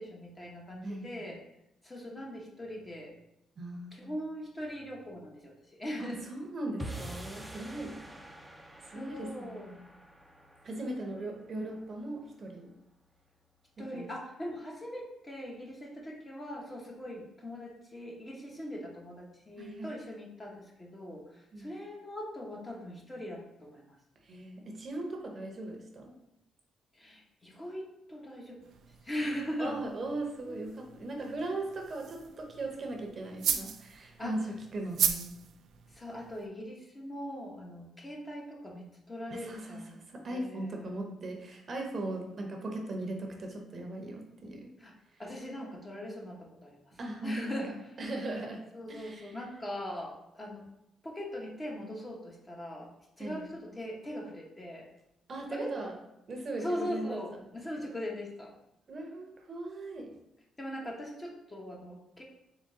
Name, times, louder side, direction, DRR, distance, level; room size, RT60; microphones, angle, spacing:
voice 1, 0.0-1.4 1.8-3.1 3.9-6.2 8.9-9.7 10.7-11.3 13.8-24.0 26.9-28.6 29.0-29.8 30.5-30.7 34.2-34.4 35.9-40.0 40.3-40.9 44.8-44.9 45.2-46.9 47.2-47.8 48.7-50.6 51.0-52.9 53.2-54.9 55.5-55.7 56.6-58.5 60.6-62.2, equal, 20° left, -1 dB, 1.0 m, -40 dB
voice 2, 0.8-1.2 3.6-4.1 6.0-8.0 8.8-9.9 10.6-12.7 13.8-14.0 19.6-19.9 21.5-21.7 24.2-26.2 29.2-35.4 39.3-44.7 47.0-47.6 48.0-49.4 53.2-53.5 55.3-55.9 56.3-57.4 58.9-60.2, right 2 dB, 45° right, 2 dB, 0.8 m, -39 dB
sound 1, 6.8-13.2, right 1 dB, 5° right, 0.6 m, -47 dB
sound 2, 28.6-36.5, right 7 dB, 70° right, 0.4 m, -37 dB
3.6 x 3.5 x 3.7 m, 0.84 s
cardioid pair, 90°, 0 cm